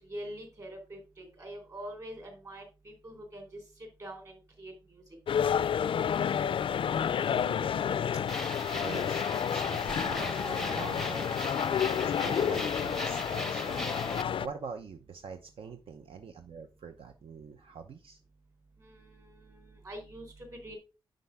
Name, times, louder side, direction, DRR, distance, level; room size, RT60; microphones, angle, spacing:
voice 1, 0.0-5.0 18.8-20.8, right 1 dB, 35° right, 2 dB, 3.6 m, -45 dB
sound 1, 5.3-14.5, left 8 dB, 65° left, 0.3 m, -30 dB
voice 2, 7.3-7.7 8.1-8.2 8.7-9.3 9.5-11.4 12.0-13.9 14.4-18.2, right 5 dB, 75° right, 6 dB, 0.8 m, -44 dB
sound 2, 8.3-14.2, left 1 dB, 5° left, 0.6 m, -38 dB
9.9 x 5.3 x 3.5 m, 0.31 s
wide cardioid pair, 180°, 10 cm